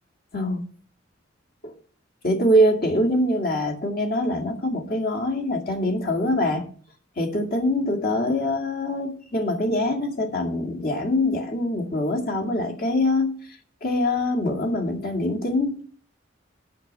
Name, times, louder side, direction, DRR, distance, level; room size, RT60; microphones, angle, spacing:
voice 1, 2.2-6.7 7.2-13.4 13.8-15.9, left 1 dB, 50° left, 2.1 m, -24 dB
8.5 x 6.6 x 7.3 m
head